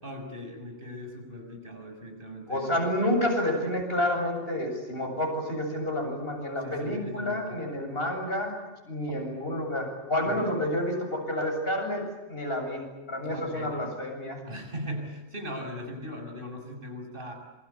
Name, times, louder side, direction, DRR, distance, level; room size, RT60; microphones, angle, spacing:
voice 1, 0.0-2.7 6.6-7.8 10.2-10.5 13.2-13.9 14.5-17.3, equal, 50° right, 3 dB, 7.3 m, -39 dB
voice 2, 2.5-8.6 8.9-12.0 12.3-14.4, left 1 dB, 60° left, 3 dB, 8.0 m, -29 dB
27.5 x 25.0 x 8.7 m, 1.0 s
omnidirectional pair, 1.1 m